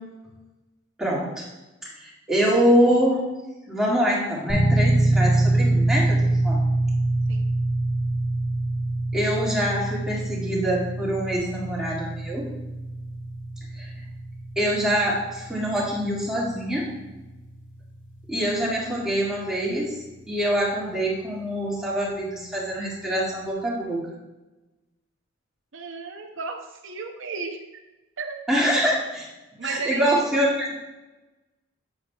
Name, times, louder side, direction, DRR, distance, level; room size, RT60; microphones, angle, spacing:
voice 1, 1.0-1.5 1.8-3.2 3.7-6.6 9.1-12.5 13.7-13.9 14.6-16.9 18.3-20.0 20.3-24.0 28.5-29.3 29.6-30.7, equal, 5° right, -7 dB, 1.9 m, -24 dB
sound 1, 4.5-21.2, right 2 dB, 75° left, 2.1 m, -26 dB
voice 2, 25.7-27.7 28.2-28.4 29.6-30.3, right 4 dB, 65° right, 3 dB, 0.6 m, -34 dB
8.6 x 7.5 x 2.3 m, 1.1 s
head